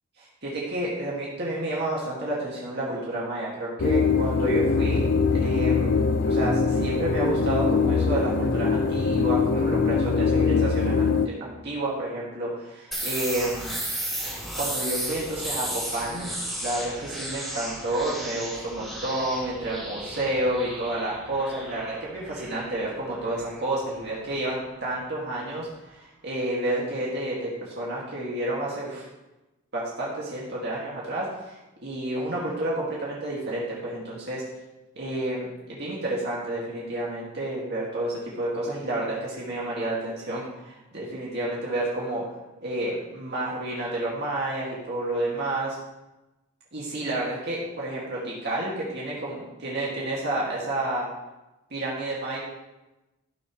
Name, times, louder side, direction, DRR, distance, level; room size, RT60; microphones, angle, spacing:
voice 1, 0.2-5.1 5.3-5.9 6.2-13.8 14.6-16.3 16.6-29.1 29.7-34.4 35.0-42.2 42.6-45.8 46.7-51.1 51.7-52.4, right 1 dB, 55° right, -6 dB, 2.2 m, -30 dB
sound 1, 3.8-11.3, left 4 dB, 55° left, 0.5 m, -22 dB
sound 2, 12.9-24.5, right 1 dB, ahead, 3.2 m, -34 dB
16.0 x 6.6 x 3.2 m, 1.0 s
head